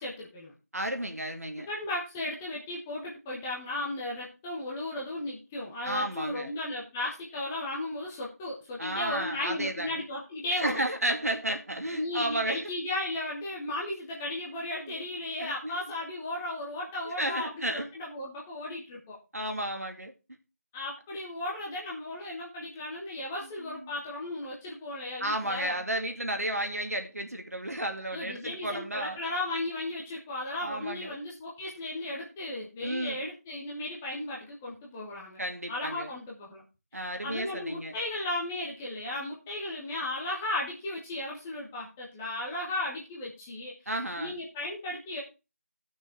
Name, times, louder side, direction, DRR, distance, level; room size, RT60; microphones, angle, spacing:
voice 1, 0.0-0.5 1.7-10.8 11.9-19.2 20.7-25.7 28.1-35.4 35.7-36.6 36.9-43.7 44.2-45.2, left 1 dB, 5° left, 0.9 m, -35 dB
voice 2, 0.7-1.7 5.8-6.5 8.8-10.0 10.6-12.7 14.8-15.1 15.4-15.8 17.0-17.9 19.3-20.1 23.4-23.9 25.2-29.2 30.6-31.2 32.8-33.3 35.4-36.1 36.9-38.0 43.9-44.3, right 1 dB, 70° right, 2.4 m, -33 dB
12.5 x 6.3 x 4.5 m
figure-of-eight pair, 170°, 9 cm